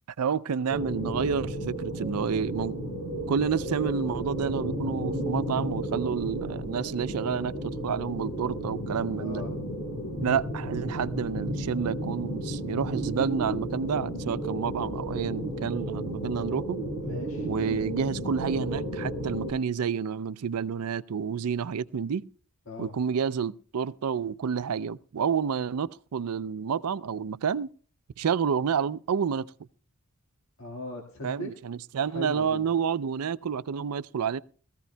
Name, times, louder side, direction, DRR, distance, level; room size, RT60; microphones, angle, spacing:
voice 1, 0.2-2.8 3.3-9.4 10.2-16.8 17.4-22.2 22.8-27.7 28.2-29.5 31.2-34.4, right 6 dB, 85° right, 0.4 m, -29 dB
sound 1, 0.7-19.5, right 1 dB, 90° left, 3.9 m, -33 dB
voice 2, 9.2-9.5 17.0-17.5 22.7-22.9 30.6-31.5 32.1-32.6, left 1 dB, 65° left, 1.7 m, -38 dB
20.0 x 14.5 x 2.2 m
head